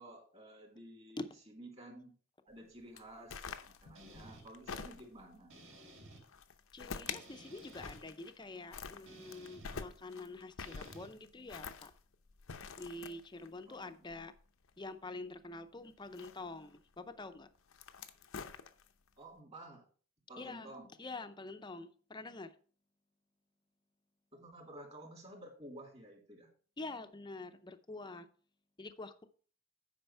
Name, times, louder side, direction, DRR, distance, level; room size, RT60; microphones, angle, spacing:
voice 1, 0.0-2.1 2.4-5.5 13.7-14.1 19.2-19.8 20.3-20.9 24.3-26.5, right 1 dB, 30° right, 2 dB, 2.7 m, -52 dB
sound 1, 3.0-5.3 6.2-7.3 7.6-8.4 8.7-14.9 16.0-16.8 17.5-19.1, left 6 dB, 75° left, 0.7 m, -47 dB
sound 2, 3.9-4.4 5.5-6.2 7.1-8.0 9.1-9.8 10.6-11.1, right 1 dB, 65° right, 3.0 m, -55 dB
voice 2, 6.7-11.9 12.8-14.3 14.8-17.5 20.4-20.7 21.0-22.5 26.8-28.3 28.8-29.3, left 2 dB, 20° left, 9 dB, 0.6 m, -46 dB
8.9 x 5.2 x 5.5 m, 0.42 s
head